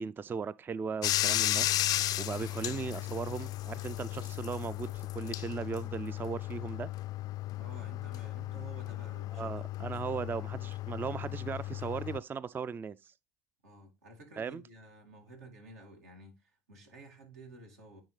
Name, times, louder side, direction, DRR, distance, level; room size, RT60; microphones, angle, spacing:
voice 1, 0.0-1.7 2.2-6.9 9.4-13.1 14.4-14.6, right 6 dB, 25° right, 0.3 m, -37 dB
Bathtub (filling or washing), 1.0-12.2, left 15 dB, 55° left, 0.3 m, -35 dB
voice 2, 7.6-10.5 13.6-18.0, right 2 dB, 90° right, 2.2 m, -52 dB
9.7 x 3.8 x 3.2 m
hypercardioid pair, 75°, 8 cm